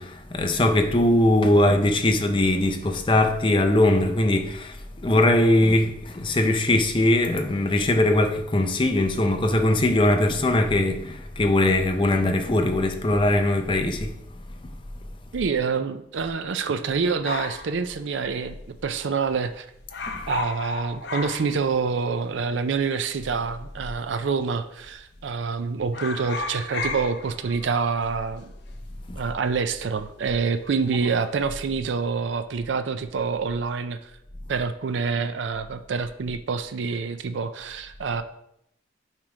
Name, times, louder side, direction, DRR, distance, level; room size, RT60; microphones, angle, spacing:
voice 1, 0.0-14.1, left 1 dB, 25° left, 0.6 m, -21 dB
voice 2, 15.3-19.7 20.3-28.5 29.2-34.1 34.5-38.2, right 5 dB, 80° right, 0.4 m, -27 dB
sound 1, 17.2-18.7 19.0-19.1 19.3-19.6 19.9-22.1 22.4-22.5 23.3-24.0 24.3-24.6 24.9-25.5 25.8-30.5 30.7-31.2, left 3 dB, 65° left, 0.7 m, -34 dB
7.4 x 3.2 x 4.9 m
head